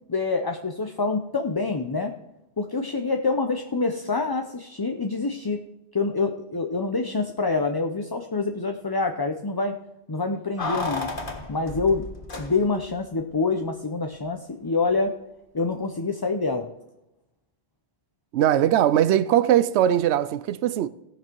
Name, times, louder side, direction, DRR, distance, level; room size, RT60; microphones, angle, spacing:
voice 1, 0.1-2.1 2.6-5.6 5.9-9.7 10.1-11.1 11.5-12.1 12.4-15.1 15.5-16.7, left 3 dB, 25° left, 0.6 m, -26 dB
Keys jangling, 10.6-12.9 13.2-13.3, left 3 dB, 50° left, 1.7 m, -32 dB
voice 2, 18.3-20.9, right 11 dB, 85° right, 0.8 m, -20 dB
18.0 x 6.1 x 4.5 m
omnidirectional pair, 1.1 m